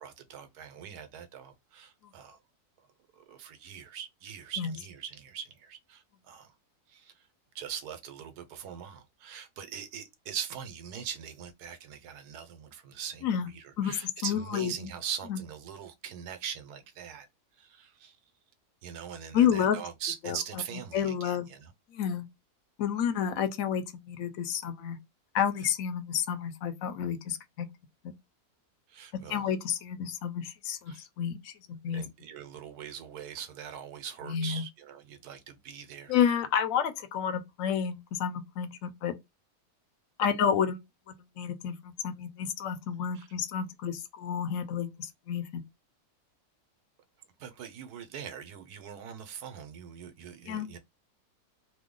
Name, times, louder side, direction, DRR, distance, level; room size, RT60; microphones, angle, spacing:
voice 1, 0.0-2.4 3.2-6.5 6.9-7.2 7.5-17.3 17.6-18.2 18.8-21.7 28.9-29.4 30.9-31.0 31.9-36.1 43.1-43.3 47.4-50.8, right 8 dB, 85° right, 1.2 m, -42 dB
voice 2, 13.8-14.9 15.3-15.4 19.3-19.8 20.2-20.4 20.9-21.5 21.9-22.3 22.8-25.0 25.3-27.7 28.0-28.1 29.3-32.0 34.2-34.6 36.1-39.1 40.2-45.6 50.5-50.7, left 8 dB, 70° left, 0.9 m, -30 dB
3.0 x 2.1 x 3.6 m
omnidirectional pair, 1.7 m